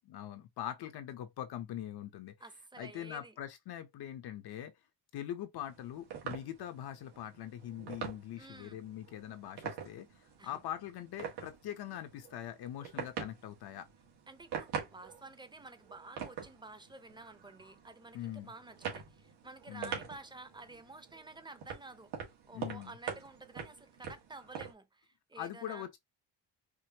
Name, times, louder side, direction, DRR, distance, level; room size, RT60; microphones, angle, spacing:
voice 1, 0.1-2.3 2.8-4.7 5.1-13.9 18.1-18.5 19.7-20.0 22.5-22.9 25.4-26.0, left 11 dB, 70° left, 0.9 m, -42 dB
voice 2, 2.4-3.3 8.4-8.8 10.4-10.6 14.3-25.9, right 3 dB, 10° right, 0.7 m, -51 dB
sound 1, 5.6-24.7, right 7 dB, 85° right, 1.7 m, -45 dB
4.9 x 2.3 x 2.9 m
cardioid pair, 95°, 39 cm